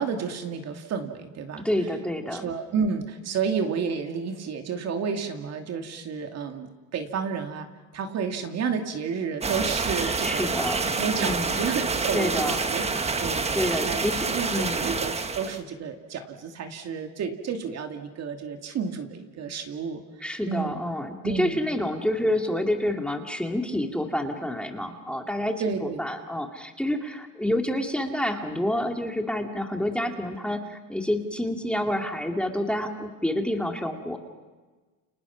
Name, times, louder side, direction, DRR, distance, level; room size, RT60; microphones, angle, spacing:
voice 1, 0.0-1.7 2.3-7.7 7.9-10.5 11.0-13.5 13.8-14.1 14.3-20.0 20.5-20.8 21.2-21.6 25.6-26.0, right 6 dB, 50° right, 5 dB, 2.7 m, -31 dB
voice 2, 1.6-2.5 10.0-10.9 11.2-11.6 12.1-12.6 13.5-14.3 14.5-14.9 20.2-34.2, left 1 dB, 5° left, 4 dB, 2.2 m, -28 dB
sound 1, 9.4-15.6, right 4 dB, 20° right, 1.4 m, -27 dB
29.5 x 29.5 x 6.0 m, 1.3 s
cardioid pair, 125°, 35 cm